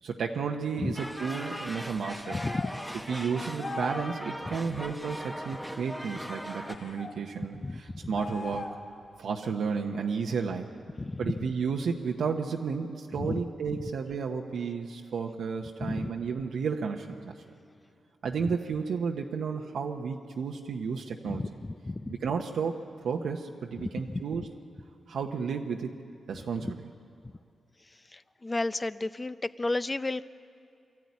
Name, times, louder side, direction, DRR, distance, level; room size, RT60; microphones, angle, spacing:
voice 1, 0.0-2.4 3.1-8.7 9.2-10.7 11.2-17.3 18.2-21.4 22.1-22.8 23.0-24.5 25.1-26.0 26.3-26.9, right 5 dB, 85° right, 1 dB, 1.0 m, -32 dB
sound 1, 1.0-6.8, equal, ahead, 0.9 m, -39 dB
sound 2, 2.2-2.8 3.6-4.1 6.7-7.1 8.1-8.9, left 3 dB, 75° left, 2.0 m, -38 dB
voice 2, 2.3-2.7 4.7-4.8 7.6-8.0 11.0-11.3 13.2-13.4 15.8-16.1 21.3-22.1 23.8-24.2 28.1-30.2, left 2 dB, 25° left, 14 dB, 0.5 m, -32 dB
22.5 x 13.5 x 9.6 m, 2.4 s
cardioid pair, 90°, 0 cm